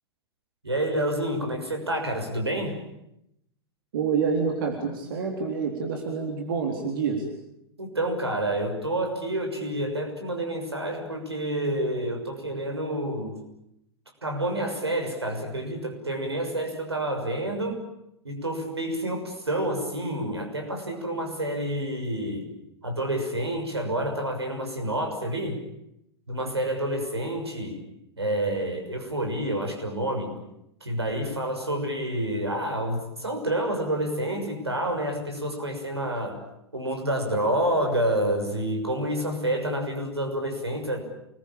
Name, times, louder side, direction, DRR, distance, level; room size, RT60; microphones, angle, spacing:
voice 1, 0.6-2.8 7.8-13.4 14.2-17.8 18.2-22.5 22.8-25.6 26.3-27.8 28.2-30.3 30.8-36.4 36.7-41.0, right 1 dB, 80° right, 4 dB, 6.4 m, -28 dB
voice 2, 3.9-7.3, right 5 dB, 55° right, 3 dB, 3.9 m, -27 dB
28.5 x 21.5 x 8.9 m, 0.81 s
figure-of-eight pair, 95°, 13 cm